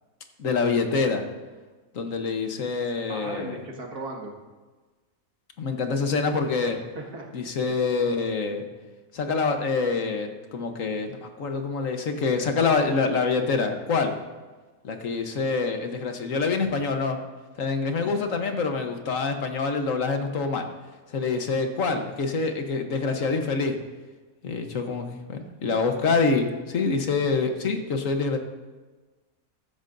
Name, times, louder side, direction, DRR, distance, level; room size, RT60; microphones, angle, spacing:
voice 1, 0.4-1.2 1.9-3.6 5.6-6.8 7.3-8.7 9.1-14.1 14.8-17.2 17.6-20.7 21.1-23.8 24.4-28.4, left 4 dB, 60° left, 5 dB, 1.4 m, -26 dB
voice 2, 3.1-4.3 6.6-7.3 7.7-7.8, right 2 dB, 85° right, 0 dB, 2.4 m, -37 dB
15.5 x 13.0 x 2.6 m, 1.3 s
omnidirectional pair, 1.6 m